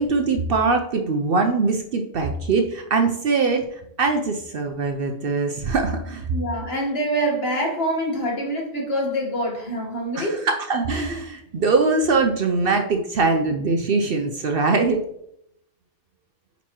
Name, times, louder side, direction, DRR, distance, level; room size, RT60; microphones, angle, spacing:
voice 1, 0.0-6.3 10.2-15.0, right 4 dB, 60° right, 4 dB, 0.7 m, -22 dB
voice 2, 6.3-10.4, right 1 dB, 55° left, -1 dB, 1.7 m, -25 dB
9.0 x 4.1 x 2.9 m, 0.76 s
omnidirectional pair, 1.3 m